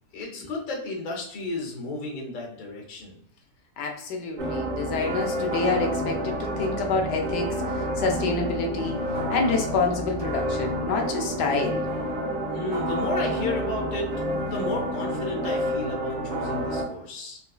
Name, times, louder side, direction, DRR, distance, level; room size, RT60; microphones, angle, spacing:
voice 1, 0.1-3.2 12.5-14.1 14.4-17.4, left 2 dB, 40° left, -1 dB, 0.7 m, -33 dB
voice 2, 3.8-11.9, left 4 dB, 90° left, 2 dB, 1.3 m, -28 dB
sound 1, 4.4-16.8, equal, 60° right, 1.0 m, -29 dB
4.0 x 2.4 x 2.3 m, 0.67 s
omnidirectional pair, 1.7 m